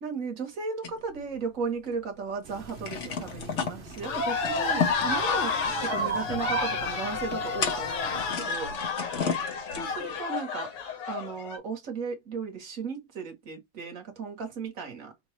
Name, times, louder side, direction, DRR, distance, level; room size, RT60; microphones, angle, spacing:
voice 1, 0.0-8.7 9.8-10.7 11.1-15.1, right 5 dB, 45° right, 1.2 m, -35 dB
sound 1, 0.8-2.0 2.3-2.4 2.6-10.2, left 6 dB, 65° left, 0.7 m, -35 dB
sound 2, 2.4-8.3, right 5 dB, 90° right, 0.4 m, -38 dB
sound 3, 4.0-11.6, left 5 dB, 90° left, 2.2 m, -30 dB
5.4 x 2.3 x 3.1 m
omnidirectional pair, 2.4 m